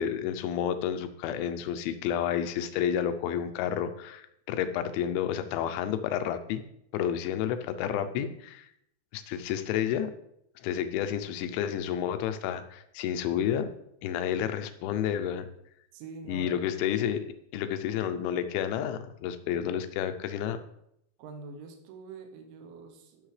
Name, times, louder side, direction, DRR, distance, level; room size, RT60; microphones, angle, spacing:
voice 1, 0.0-6.6 6.9-8.7 9.1-10.1 10.6-13.7 14.0-15.5 16.3-17.2 17.5-20.6, left 9 dB, 85° left, 10 dB, 3.0 m, -30 dB
voice 2, 15.9-16.6 19.4-19.7 21.2-23.3, right 4 dB, 90° right, 4 dB, 3.4 m, -45 dB
14.5 x 6.5 x 3.3 m, 0.76 s
omnidirectional pair, 5.3 m